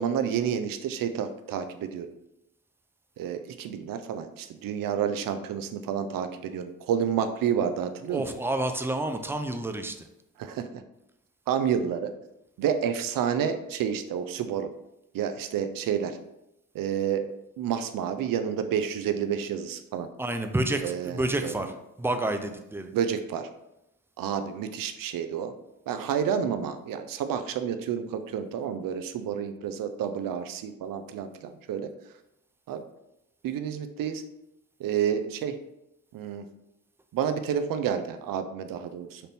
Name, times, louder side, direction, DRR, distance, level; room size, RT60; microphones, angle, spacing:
voice 1, 0.0-2.1 3.2-8.3 10.4-10.7 11.5-12.1 12.6-14.7 15.1-16.2 16.7-20.1 20.8-21.7 22.9-23.5 24.2-25.5 25.9-31.9 32.7-32.8 33.4-34.2 34.8-35.6 36.1-36.5 37.1-39.2, right 8 dB, 65° right, 9 dB, 0.5 m, -29 dB
voice 2, 8.1-9.9 20.2-20.8 21.1-21.7 22.0-22.9, right 1 dB, 5° right, 7 dB, 0.4 m, -29 dB
4.3 x 2.6 x 3.5 m, 0.87 s
supercardioid pair, 60°, 36 cm